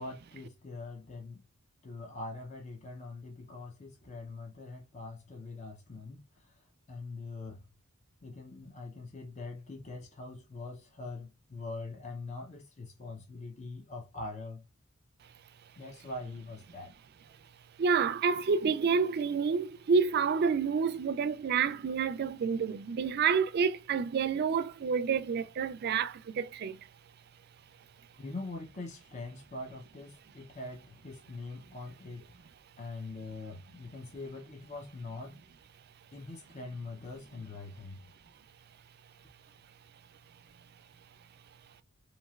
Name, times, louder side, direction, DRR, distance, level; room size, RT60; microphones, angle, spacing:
voice 1, 0.0-1.4 1.8-7.7 8.2-14.7 15.8-16.9 28.2-32.5 32.8-35.4 36.1-38.1, left 3 dB, 35° left, 0.5 m, -43 dB
voice 2, 17.8-26.9, right 5 dB, 50° right, 0.3 m, -29 dB
3.0 x 2.8 x 2.3 m
head